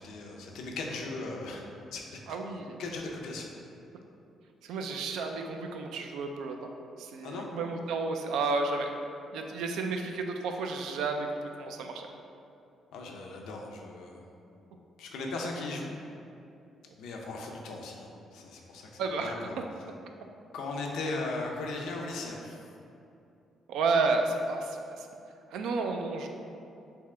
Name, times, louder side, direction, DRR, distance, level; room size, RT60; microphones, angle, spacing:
voice 1, 0.0-1.6 1.9-2.2 2.8-3.5 7.2-7.5 12.9-14.3 15.0-15.9 17.0-19.6 20.5-22.7, left 3 dB, 85° left, 0 dB, 0.5 m, -38 dB
voice 2, 2.3-2.8 4.6-6.7 7.0-8.9 9.3-12.1 19.0-19.3 23.7-25.1 25.5-26.3, right 3 dB, 85° right, 4 dB, 0.3 m, -31 dB
3.5 x 2.8 x 3.2 m, 2.7 s
cardioid pair, 90°, 0 cm